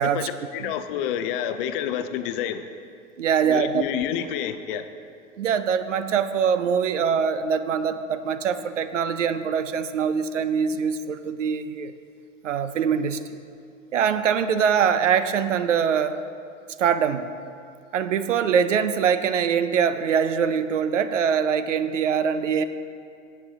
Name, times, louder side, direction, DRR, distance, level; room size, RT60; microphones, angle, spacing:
voice 1, 0.0-2.6 3.4-4.8, left 10 dB, 45° left, 10 dB, 0.7 m, -29 dB
voice 2, 3.2-3.9 5.4-11.9 12.4-13.4 13.9-16.2 16.8-17.3 17.9-22.6, right 7 dB, 70° right, 12 dB, 0.7 m, -23 dB
17.5 x 8.4 x 3.6 m, 2.3 s
figure-of-eight pair, 90°, 39 cm